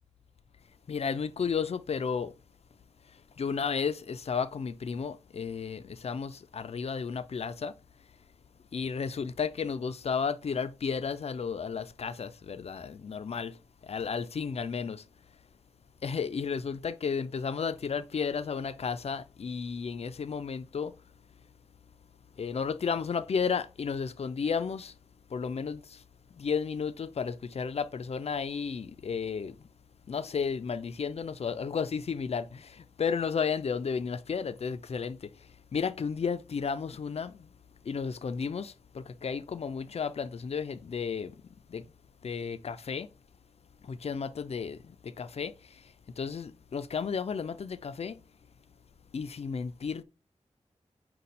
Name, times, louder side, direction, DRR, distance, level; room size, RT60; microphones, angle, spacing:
voice 1, 0.9-2.3 3.4-7.7 8.7-13.6 13.8-15.0 16.0-20.9 22.4-24.9 25.3-26.0 26.4-29.6 30.1-35.2 35.7-37.5 37.9-41.3 41.7-41.8 42.2-43.1 43.9-45.5 46.2-48.2 49.1-50.0, left 6 dB, 55° left, 0.4 m, -33 dB
5.1 x 2.2 x 4.1 m
wide cardioid pair, 65°, 13 cm